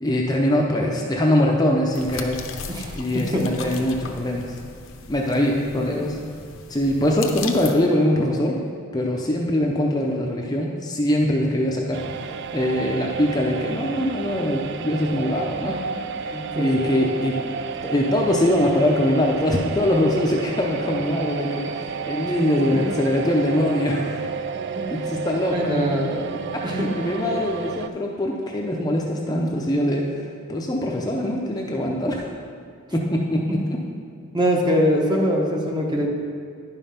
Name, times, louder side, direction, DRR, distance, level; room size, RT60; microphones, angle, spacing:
voice 1, 0.0-2.4 3.0-4.6 5.1-6.2 6.7-8.6 8.9-15.8 16.6-17.4 17.8-24.2 24.9-25.8 26.5-32.3 32.9-33.8, left 1 dB, 20° left, -1 dB, 0.6 m, -23 dB
sound 1, 1.9-7.7, left 5 dB, 75° left, 0.8 m, -37 dB
voice 2, 2.7-3.8 5.7-6.1 16.3-16.9 22.7-22.9 24.7-24.8 25.5-26.2 26.6-26.9 34.3-36.1, equal, 20° right, 0 dB, 1.1 m, -23 dB
sound 2, 11.9-27.9, right 6 dB, 55° right, 0.3 m, -31 dB
10.5 x 5.4 x 5.7 m, 2.2 s
head